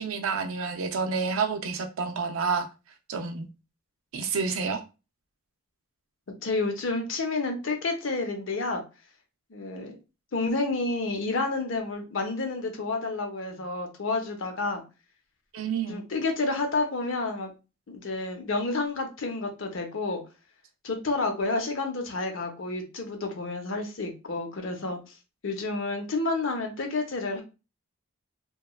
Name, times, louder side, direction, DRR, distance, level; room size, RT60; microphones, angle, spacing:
voice 1, 0.0-2.7 3.1-3.5 4.1-4.8 15.5-16.0, right 5 dB, 75° right, 6 dB, 0.5 m, -29 dB
voice 2, 6.3-8.8 9.5-10.0 10.3-14.8 15.9-17.5 17.9-20.2 20.8-25.0 25.4-27.4, left 3 dB, 60° left, 4 dB, 0.6 m, -30 dB
2.9 x 2.2 x 2.2 m, 0.30 s
head